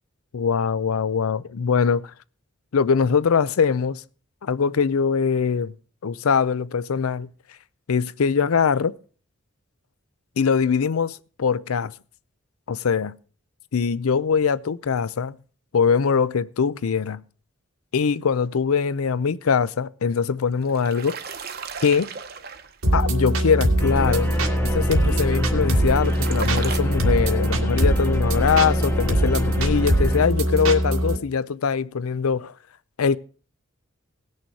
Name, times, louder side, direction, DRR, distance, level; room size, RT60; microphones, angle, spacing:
voice 1, 0.3-2.1 2.7-4.0 4.4-5.7 6.0-7.3 7.9-8.9 10.4-11.9 12.7-13.1 13.7-15.4 15.7-17.2 17.9-21.2 21.8-22.1 22.9-24.3 24.6-32.5 33.0-33.2, left 6 dB, 90° left, 0.5 m, -22 dB
sound 1, 20.5-23.0 25.6-26.8, right 5 dB, 45° right, 0.9 m, -35 dB
sound 2, 22.8-31.2, right 1 dB, 90° right, 1.9 m, -22 dB
sound 3, 23.8-30.3, left 1 dB, 10° left, 0.4 m, -30 dB
18.5 x 6.5 x 4.6 m
head